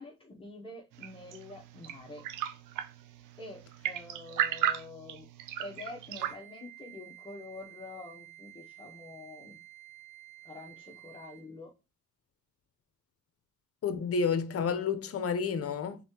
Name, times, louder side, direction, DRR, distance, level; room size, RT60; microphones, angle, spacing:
voice 1, 0.0-2.3 3.4-5.3 5.6-9.6 10.4-11.7, left 2 dB, 15° left, 1.0 m, -46 dB
sound 1, 0.9-6.3, right 11 dB, 90° right, 0.5 m, -36 dB
Wind instrument woodwind instrument, 6.2-11.5, right 14 dB, 15° right, 1.5 m, -52 dB
voice 2, 13.8-16.0, left 5 dB, 50° left, 0.8 m, -30 dB
4.1 x 3.7 x 2.8 m
cardioid pair, 90°, 30 cm